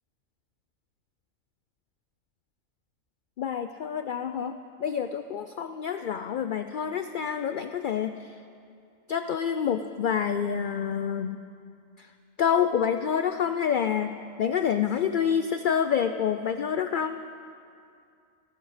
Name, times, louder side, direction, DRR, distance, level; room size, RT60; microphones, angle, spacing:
voice 1, 3.4-8.4 9.1-11.4 12.0-12.1 12.4-17.2, left 8 dB, 70° left, 8 dB, 0.4 m, -27 dB
18.5 x 14.5 x 5.0 m, 2.4 s
omnidirectional pair, 1.4 m